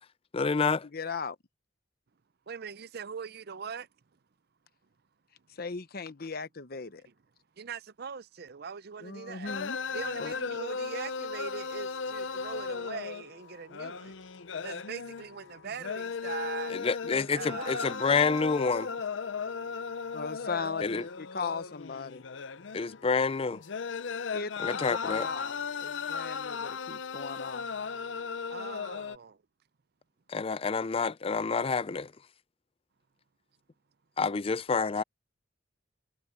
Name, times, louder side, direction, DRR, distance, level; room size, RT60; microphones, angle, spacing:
voice 1, 0.3-0.9 16.7-18.9 20.8-21.0 22.7-23.6 24.6-25.3 30.3-32.1 34.2-35.0, left 4 dB, 30° left, 0.4 m, -28 dB
voice 2, 0.9-1.4 5.6-7.0 9.0-9.8 10.2-10.3 20.1-22.2 24.3-27.7, left 5 dB, 55° left, 0.9 m, -37 dB
voice 3, 2.5-3.9 7.1-7.2 7.6-9.5 9.9-14.1 14.6-16.7 17.3-17.9 20.4-20.7 28.5-29.4, right 6 dB, 55° right, 0.6 m, -41 dB
sound 1, 9.5-29.2, left 5 dB, 80° left, 0.7 m, -36 dB
head